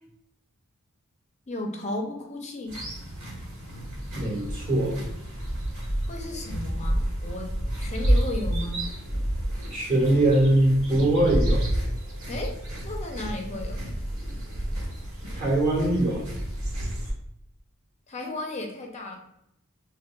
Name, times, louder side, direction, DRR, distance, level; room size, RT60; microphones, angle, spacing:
voice 1, 1.5-2.8 6.1-8.9 12.3-12.6 12.8-13.9 18.1-19.2, left 2 dB, 35° left, 2 dB, 0.5 m, -34 dB
sound 1, 2.7-17.1, right 1 dB, 75° right, 1.4 m, -30 dB
voice 2, 4.1-5.0 9.7-11.6 15.3-16.2, right 1 dB, 40° right, -4 dB, 1.4 m, -22 dB
6.2 x 2.2 x 2.2 m, 0.79 s
head